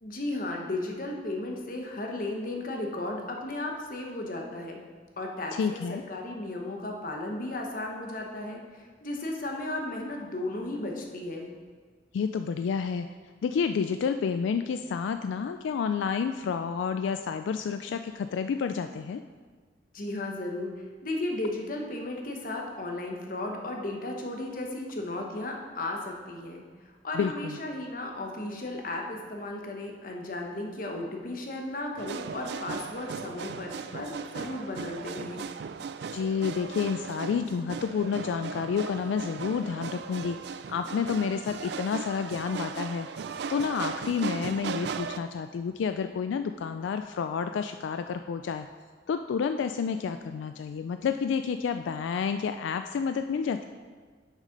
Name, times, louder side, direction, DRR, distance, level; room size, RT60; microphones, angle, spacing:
voice 1, 0.0-4.8 5.2-11.5 19.9-20.7 21.0-26.6 27.0-35.4, left 2 dB, 50° left, 1 dB, 1.0 m, -35 dB
voice 2, 5.5-6.0 12.1-13.1 13.4-19.2 27.1-27.6 36.1-40.4 40.7-43.1 43.5-48.7 49.1-53.7, left 6 dB, 85° left, 8 dB, 0.3 m, -30 dB
sound 1, 32.0-45.2, right 5 dB, 60° right, 0.3 m, -37 dB
6.6 x 6.2 x 5.2 m, 1.5 s
head